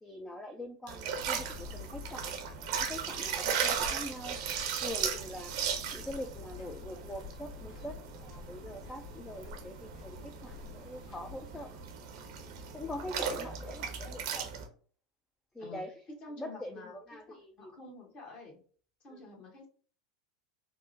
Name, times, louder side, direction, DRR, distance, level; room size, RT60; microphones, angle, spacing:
voice 1, 0.0-2.3 2.7-4.4 4.8-5.7 5.9-11.7 12.7-14.5 15.5-15.9 16.4-17.7 19.1-19.2, left 1 dB, 10° left, 5 dB, 0.3 m, -43 dB
sound 1, 0.9-14.7, right 7 dB, 65° right, 0.6 m, -37 dB
sound 2, 1.1-11.6, left 6 dB, 70° left, 1.2 m, -49 dB
voice 2, 16.2-18.6 19.0-19.7, left 2 dB, 45° left, 0 dB, 1.2 m, -49 dB
3.5 x 2.0 x 2.6 m, 0.44 s
hypercardioid pair, 90°, 3 cm